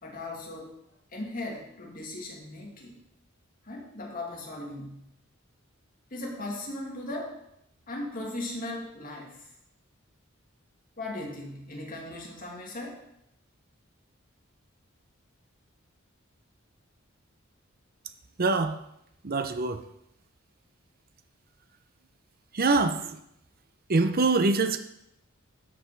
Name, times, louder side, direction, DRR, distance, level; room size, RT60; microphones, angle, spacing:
voice 1, 0.0-0.7 1.1-3.0 3.6-5.0 6.1-7.4 7.9-9.5 11.0-13.0, left 2 dB, 45° left, -1 dB, 2.2 m, -38 dB
voice 2, 18.4-18.8 19.2-19.8 22.5-23.2 23.9-24.8, right 3 dB, 50° right, 8 dB, 0.7 m, -24 dB
12.5 x 5.3 x 4.6 m, 0.79 s
head